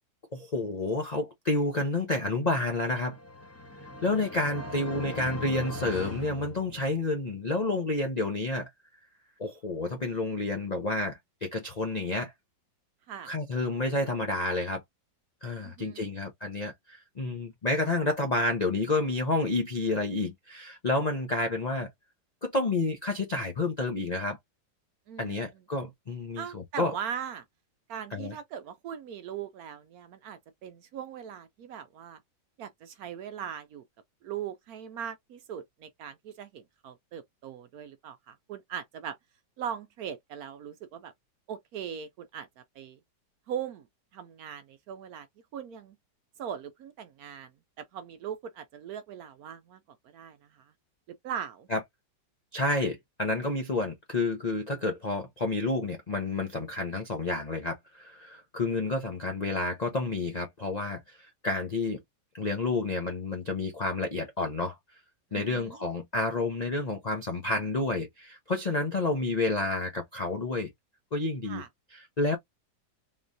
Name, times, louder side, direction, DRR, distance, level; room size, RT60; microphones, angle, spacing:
voice 1, 0.3-3.2 4.0-8.7 9.4-12.3 13.2-14.8 15.4-21.9 22.4-24.4 25.2-27.0 28.1-28.4 51.7-51.8 52.5-62.0 62.3-64.8 65.3-70.7 71.1-71.6 71.9-72.4, left 2 dB, 80° left, 0.3 m, -30 dB
sound 1, 2.9-7.2, left 2 dB, 15° left, 0.5 m, -40 dB
voice 2, 15.6-16.1 25.1-25.4 26.4-27.4 27.9-32.2 32.6-33.8 34.2-39.2 39.6-41.1 41.5-42.5 42.8-43.0 43.5-43.8 44.1-45.3 45.5-45.9 46.4-47.5 47.8-49.8 50.1-50.4 51.2-51.7 65.3-65.8 71.5-71.7, right 8 dB, 70° right, 0.9 m, -39 dB
3.7 x 3.1 x 2.6 m
omnidirectional pair, 1.9 m